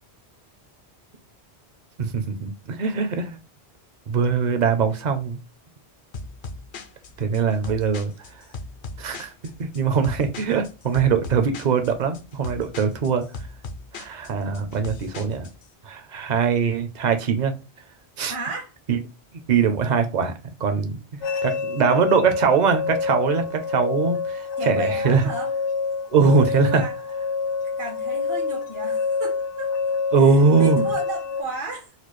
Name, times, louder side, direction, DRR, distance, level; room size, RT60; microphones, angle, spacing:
voice 1, 2.0-3.4 4.1-5.4 7.2-8.1 9.0-9.3 9.6-13.2 13.9-15.5 15.8-17.5 18.2-18.3 18.9-19.0 19.5-20.3 20.6-21.0 21.4-25.2 26.1-26.8 30.1-30.9, right 5 dB, 50° right, 0.6 m, -21 dB
sound 1, 6.1-15.7, left 3 dB, 55° left, 0.6 m, -38 dB
voice 2, 18.3-18.7 24.6-25.5 26.2-26.9 27.8-29.7 30.2-31.9, right 2 dB, 80° right, 1.3 m, -34 dB
sound 2, 21.2-31.4, left 5 dB, 85° left, 1.0 m, -27 dB
4.2 x 2.3 x 3.0 m
omnidirectional pair, 1.1 m